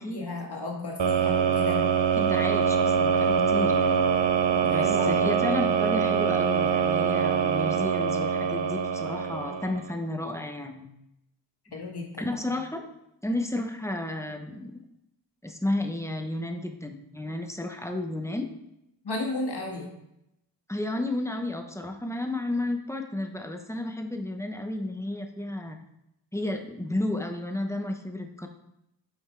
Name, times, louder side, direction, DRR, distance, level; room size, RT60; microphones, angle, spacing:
voice 1, 0.0-1.9 4.6-5.3 11.7-12.6 19.0-19.9, left 2 dB, 60° left, -1 dB, 1.9 m, -34 dB
sound 1, 1.0-9.9, right 7 dB, 70° right, 0.8 m, -24 dB
voice 2, 2.2-4.1 4.6-10.9 12.2-12.9 13.2-14.7 15.4-18.5 20.7-25.8 26.3-28.5, left 1 dB, 5° left, 4 dB, 1.0 m, -32 dB
7.6 x 5.3 x 4.6 m, 0.83 s
wide cardioid pair, 80°, 45 cm